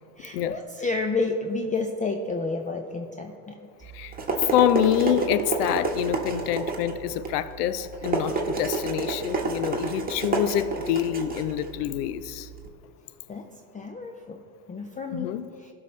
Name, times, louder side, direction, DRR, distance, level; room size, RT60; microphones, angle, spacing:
voice 1, 0.2-3.6 13.3-13.5 13.7-14.4 14.7-15.7, left 3 dB, 15° left, 4 dB, 0.5 m, -30 dB
voice 2, 3.8-4.1 4.5-12.5 15.1-15.5, left 11 dB, 80° left, 15 dB, 0.6 m, -26 dB
sound 1, 3.8-12.7, right 3 dB, 20° right, 1.3 m, -29 dB
16.5 x 5.7 x 3.2 m, 2.5 s
hypercardioid pair, 75°, 47 cm